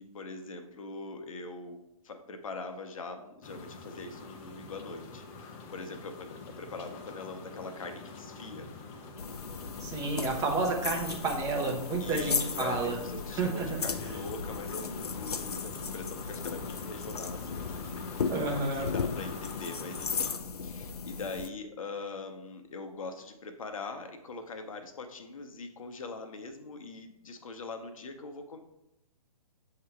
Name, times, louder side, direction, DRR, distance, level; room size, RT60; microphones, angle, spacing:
voice 1, 0.0-1.8 2.0-8.7 12.0-18.3 18.7-28.6, left 3 dB, 60° left, 6 dB, 0.8 m, -42 dB
sound 1, 3.4-20.4, left 4 dB, 20° left, 0.5 m, -45 dB
sound 2, 9.2-21.5, left 5 dB, 85° left, 0.4 m, -36 dB
voice 2, 9.8-13.0 13.4-13.8 18.3-18.9, right 3 dB, 15° right, 0 dB, 0.8 m, -30 dB
7.5 x 2.9 x 4.5 m, 0.89 s
figure-of-eight pair, 130°, 19 cm